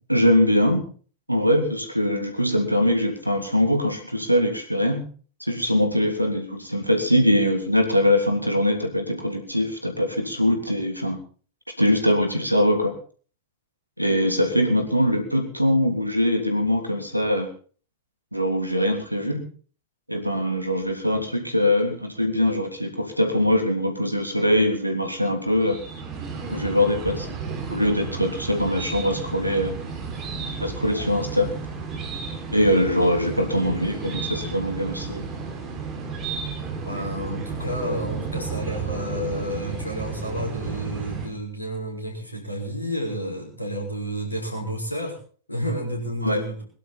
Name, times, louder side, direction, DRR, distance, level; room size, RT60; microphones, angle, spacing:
voice 1, 0.1-0.8 1.3-5.0 5.5-11.2 11.8-12.9 14.0-17.5 18.3-19.4 20.1-25.8 26.5-29.8 30.6-31.5 32.5-35.2 46.2-46.4, left 1 dB, 90° right, 5 dB, 3.2 m, -22 dB
sound 1, 25.4-41.3, right 5 dB, 30° right, 5.4 m, -33 dB
voice 2, 36.8-45.2 45.5-46.6, equal, 85° left, 1 dB, 5.9 m, -30 dB
22.5 x 11.5 x 4.1 m, 0.41 s
figure-of-eight pair, 90°, 0 cm